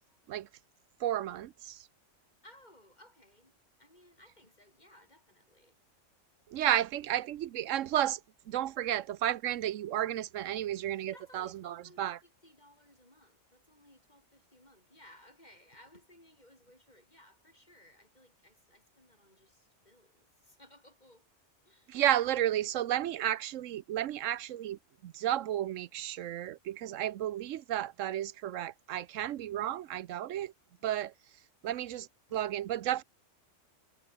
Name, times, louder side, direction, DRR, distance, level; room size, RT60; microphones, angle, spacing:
voice 1, 1.0-1.9 6.5-8.2 8.5-12.2 21.9-30.5 30.8-31.1 31.6-33.0, right 12 dB, 85° right, 1.0 m, -32 dB
voice 2, 2.4-5.8 10.9-21.3 21.6-22.0 26.0-26.1 30.4-30.5 30.8-30.9 32.3-32.4, left 1 dB, 35° left, 7.6 m, -60 dB
omnidirectional pair, 1.3 m